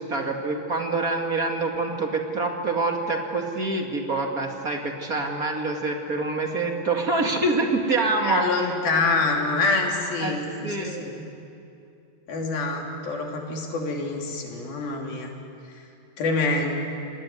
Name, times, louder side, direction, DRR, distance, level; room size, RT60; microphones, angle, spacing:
voice 1, 0.0-8.7 10.2-10.3 10.6-11.0, right 3 dB, 30° right, 2 dB, 2.0 m, -26 dB
voice 2, 8.2-11.2 12.3-15.3 16.2-16.8, left 3 dB, 80° left, 1 dB, 4.8 m, -26 dB
28.5 x 20.5 x 9.7 m, 2.6 s
omnidirectional pair, 4.2 m